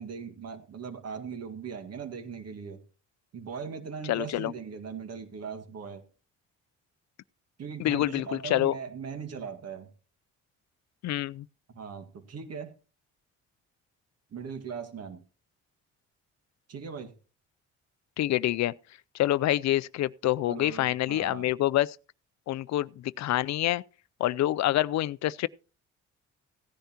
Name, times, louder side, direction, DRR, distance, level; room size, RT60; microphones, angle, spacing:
voice 1, 0.0-2.8 3.3-6.0 7.6-9.9 11.7-12.7 14.3-15.2 16.7-17.1 20.4-21.5, right 6 dB, 55° right, 1.9 m, -39 dB
voice 2, 4.1-4.5 7.8-8.8 11.0-11.5 18.2-18.7 19.1-22.0 22.5-23.8 24.2-25.5, left 14 dB, 65° left, 0.5 m, -27 dB
16.5 x 10.5 x 2.9 m
cardioid pair, 90°, 30 cm